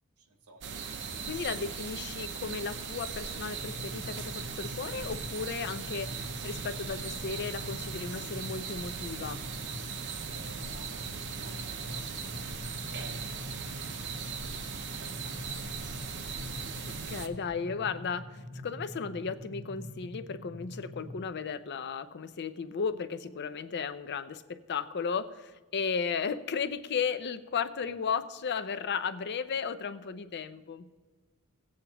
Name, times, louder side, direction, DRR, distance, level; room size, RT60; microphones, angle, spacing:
voice 1, 0.2-1.1 10.3-13.7 14.9-15.6, right 2 dB, 75° right, 5 dB, 1.1 m, -57 dB
sound 1, 0.6-17.3, right 5 dB, 55° right, 0.8 m, -39 dB
voice 2, 1.2-9.4 16.8-30.9, left 6 dB, 50° left, 11 dB, 0.5 m, -35 dB
sound 2, 3.6-21.2, left 1 dB, 25° right, 1.0 m, -45 dB
17.0 x 8.6 x 2.9 m, 1.3 s
head